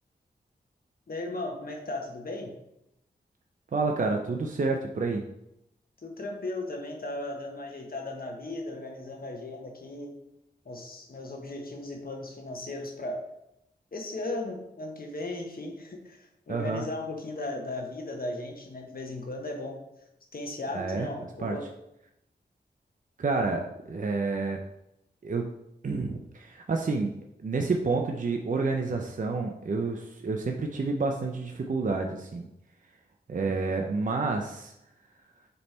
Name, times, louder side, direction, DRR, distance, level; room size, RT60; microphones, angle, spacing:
voice 1, 1.1-2.5 6.0-10.2 10.6-13.2 13.9-19.8 20.3-21.7 33.3-33.5, left 2 dB, 55° left, 2 dB, 1.3 m, -36 dB
voice 2, 3.7-5.2 16.5-16.8 20.7-21.1 21.4-21.6 23.2-24.6 25.2-25.5 25.8-27.1 27.4-32.5 33.3-34.7, right 3 dB, 45° right, 3 dB, 0.6 m, -29 dB
6.8 x 3.4 x 4.3 m, 0.84 s
cardioid pair, 55°, 18 cm